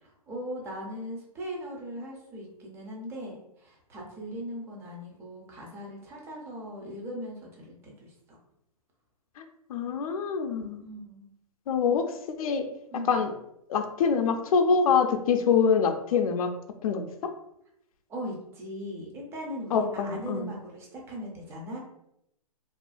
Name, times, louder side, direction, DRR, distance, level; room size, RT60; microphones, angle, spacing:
voice 1, 0.0-8.4 10.8-11.3 12.9-13.2 18.1-21.8, equal, 10° right, -1 dB, 0.4 m, -39 dB
voice 2, 9.7-10.8 11.7-12.1 12.4-12.7 13.1-13.3 13.7-16.5 16.8-17.3 19.7-20.5, left 6 dB, 65° left, 6 dB, 0.4 m, -25 dB
2.4 x 2.1 x 2.4 m, 0.80 s
hypercardioid pair, 140°, 20 cm